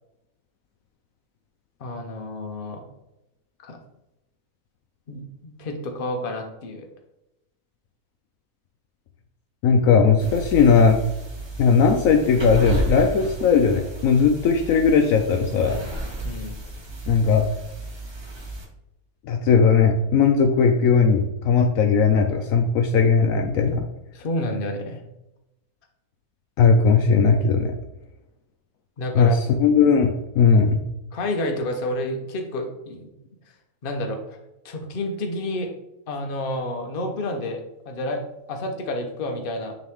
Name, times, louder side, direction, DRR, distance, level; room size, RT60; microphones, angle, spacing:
voice 1, 1.8-2.8 3.6-3.8 5.1-6.9 16.2-16.6 24.1-25.0 29.0-29.4 31.1-33.1 33.8-34.4 34.6-35.7 36.1-39.7, left 1 dB, 45° left, 3 dB, 0.9 m, -30 dB
voice 2, 9.6-11.0 11.6-15.8 17.1-17.5 19.2-23.9 26.6-27.8 29.1-30.8, left 5 dB, 70° left, 5 dB, 0.9 m, -18 dB
sound 1, 10.2-18.7, right 2 dB, 25° right, 0.7 m, -33 dB
9.2 x 3.1 x 3.5 m, 0.92 s
omnidirectional pair, 1.6 m